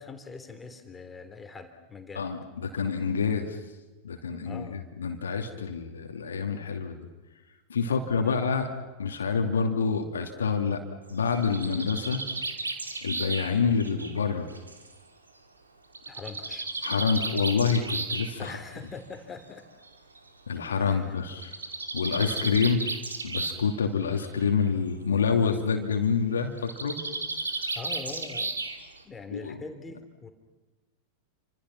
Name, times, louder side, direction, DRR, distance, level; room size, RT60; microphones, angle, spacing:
voice 1, 0.0-2.3 4.4-4.8 7.9-8.4 16.1-16.7 18.4-19.7 20.9-21.1 27.7-28.5 29.0-30.3, left 4 dB, 15° left, 6 dB, 3.3 m, -42 dB
voice 2, 2.1-3.6 4.0-7.1 7.7-8.7 9.0-10.8 11.1-12.2 13.0-14.5 16.8-18.6 20.5-21.5 21.9-22.9 23.2-27.0 29.3-29.6, left 5 dB, 70° left, 4 dB, 2.6 m, -27 dB
Bird, 11.1-14.9 15.9-18.3 19.4-19.5 19.8-19.9 20.2-20.3 21.3-23.7 24.0-24.5 26.6-29.0, right 3 dB, 80° right, 2.8 m, -34 dB
30.0 x 26.0 x 6.0 m, 1.2 s
figure-of-eight pair, 90°, 0 cm